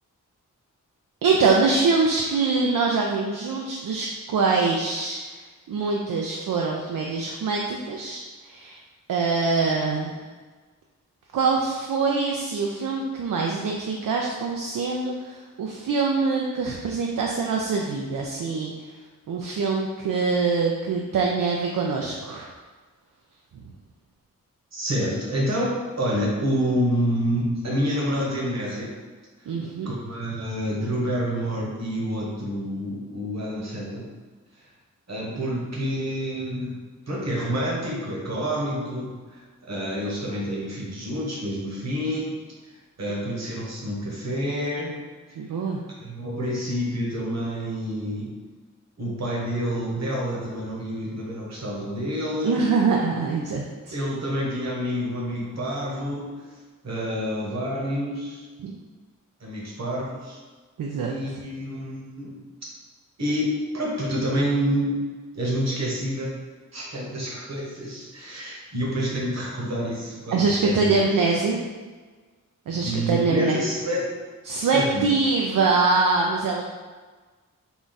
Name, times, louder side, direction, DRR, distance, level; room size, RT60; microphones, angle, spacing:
voice 1, 1.2-5.4 5.7-8.8 9.1-10.2 11.3-18.7 19.3-22.5 23.6-23.7 29.5-29.9 45.4-45.8 52.4-54.0 58.6-58.7 60.8-61.2 70.3-71.6 72.7-73.6 74.5-76.6, right 4 dB, 80° right, 0 dB, 0.5 m, -24 dB
voice 2, 24.7-28.9 29.8-34.1 34.5-34.6 35.1-36.8 37.1-45.0 46.0-48.4 49.0-52.7 53.9-56.3 56.8-58.4 59.4-60.4 61.1-62.7 63.2-65.0 65.3-66.4 66.7-71.0 72.8-74.1 74.6-75.2, equal, 55° right, -4 dB, 1.2 m, -28 dB
3.9 x 2.3 x 3.9 m, 1.4 s
wide cardioid pair, 70°, 32 cm